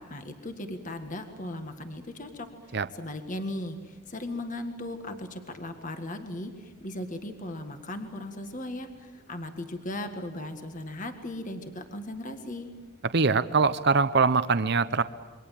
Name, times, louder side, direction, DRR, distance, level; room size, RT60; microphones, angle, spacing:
voice 1, 0.0-12.7, left 1 dB, 35° left, 7 dB, 1.7 m, -37 dB
voice 2, 13.1-15.0, right 4 dB, 50° right, 12 dB, 0.7 m, -23 dB
28.0 x 23.5 x 7.6 m, 1.4 s
head